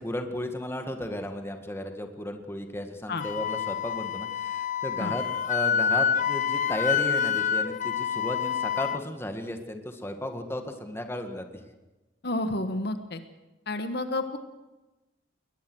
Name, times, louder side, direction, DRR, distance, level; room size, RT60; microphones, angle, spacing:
voice 1, 0.0-11.5, left 1 dB, 15° left, 6 dB, 1.8 m, -34 dB
Wind instrument woodwind instrument, 3.2-9.0, left 7 dB, 40° left, 0.7 m, -27 dB
voice 2, 12.2-13.2 13.7-14.4, left 2 dB, 60° left, 9 dB, 1.5 m, -30 dB
21.5 x 20.0 x 6.3 m, 1.1 s
head